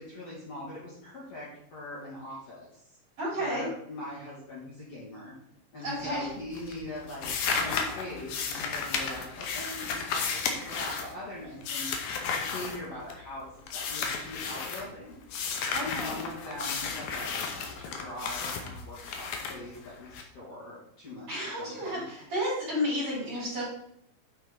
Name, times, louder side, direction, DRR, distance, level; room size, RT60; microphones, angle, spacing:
voice 1, 0.0-2.8 3.4-5.3 5.7-11.9 12.3-13.5 13.7-15.2 15.8-22.0, left 1 dB, 45° left, -7 dB, 2.8 m, -42 dB
voice 2, 3.2-3.7 5.8-6.3 15.7-16.2 21.3-23.6, equal, 35° right, -7 dB, 4.5 m, -32 dB
sound 1, 5.9-6.3 6.5-13.3 13.7-14.9 15.3-20.2, left 5 dB, 70° left, 2.0 m, -33 dB
9.5 x 5.7 x 3.9 m, 0.73 s
omnidirectional pair, 4.4 m